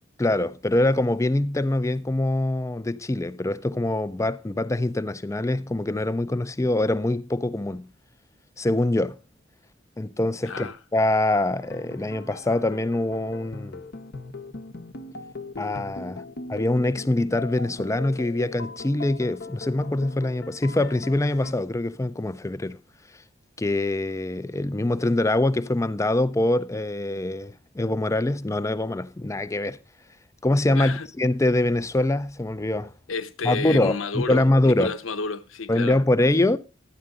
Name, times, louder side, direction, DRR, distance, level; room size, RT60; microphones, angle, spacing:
voice 1, 0.2-7.8 8.6-9.2 10.0-13.8 15.6-16.2 16.5-22.8 23.6-29.8 30.4-32.9 33.4-34.9 35.7-36.6, left 1 dB, 15° left, 0.5 m, -24 dB
voice 2, 10.5-10.8 30.7-31.1 33.1-36.0, left 4 dB, 90° left, 0.9 m, -31 dB
sound 1, 11.6-21.5, left 3 dB, 55° left, 0.9 m, -39 dB
12.5 x 9.5 x 3.8 m
head